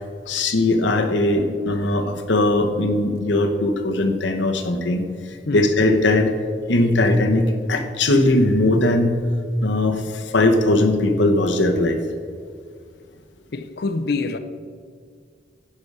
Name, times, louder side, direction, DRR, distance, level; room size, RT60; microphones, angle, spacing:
voice 1, 0.3-5.0 5.5-6.3 6.7-9.2 9.6-12.0, left 2 dB, 90° left, 1.0 m, -19 dB
voice 2, 13.5-14.4, left 3 dB, 60° left, 0.6 m, -26 dB
9.8 x 6.7 x 5.4 m
head